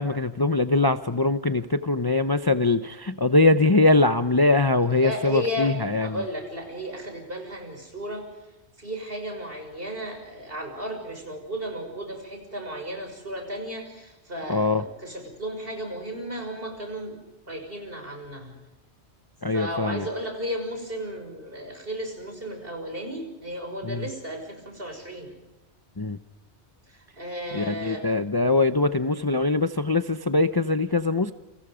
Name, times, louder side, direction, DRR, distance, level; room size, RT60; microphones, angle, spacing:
voice 1, 0.0-6.2 14.5-14.8 19.4-20.1 23.8-24.1 26.0-26.2 27.5-31.3, left 2 dB, 25° left, 10 dB, 0.7 m, -22 dB
voice 2, 4.9-8.2 8.8-17.2 17.5-18.6 19.5-25.3 26.9-28.0, equal, 55° right, 4 dB, 6.5 m, -34 dB
30.0 x 27.0 x 5.1 m, 1.1 s
omnidirectional pair, 1.2 m